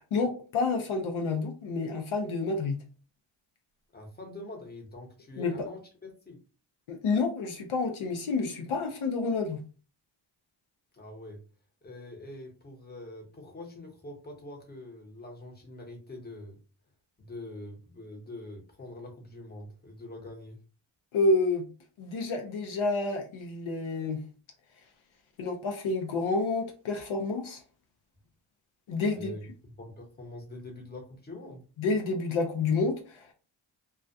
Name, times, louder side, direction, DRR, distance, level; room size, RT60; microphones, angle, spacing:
voice 1, 0.1-2.8 5.4-5.6 6.9-9.6 21.1-21.7 22.0-24.2 25.4-27.6 28.9-29.3 31.8-33.3, left 3 dB, 75° left, 4 dB, 0.6 m, -29 dB
voice 2, 3.9-6.4 10.9-11.4 11.8-16.6 17.2-20.6 29.0-29.4 29.7-31.6, left 1 dB, 20° left, 1 dB, 0.9 m, -44 dB
2.3 x 2.2 x 2.5 m, 0.35 s
cardioid pair, 65°, 49 cm